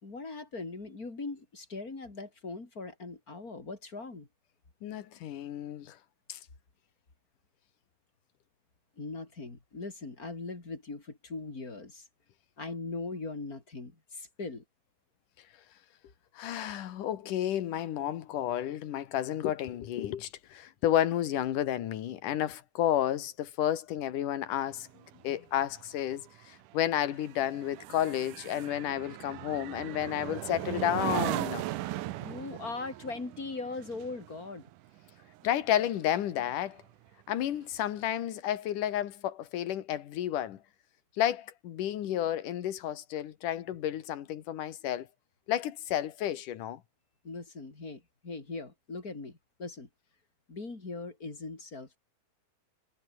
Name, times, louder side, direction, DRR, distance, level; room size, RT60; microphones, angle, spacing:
voice 1, 0.0-4.3 9.0-12.1 12.6-14.6 32.2-34.7 47.2-49.9 50.5-52.0, left 3 dB, 25° left, 4.3 m, -40 dB
voice 2, 4.8-6.0 6.3-6.4 16.4-24.9 25.2-31.6 35.4-36.8 37.3-40.6 41.2-45.1 45.5-46.8, left 11 dB, 75° left, 3.1 m, -31 dB
sound 1, 24.7-36.4 36.8-37.1, right 16 dB, 75° right, 2.3 m, -38 dB
omnidirectional pair, 3.7 m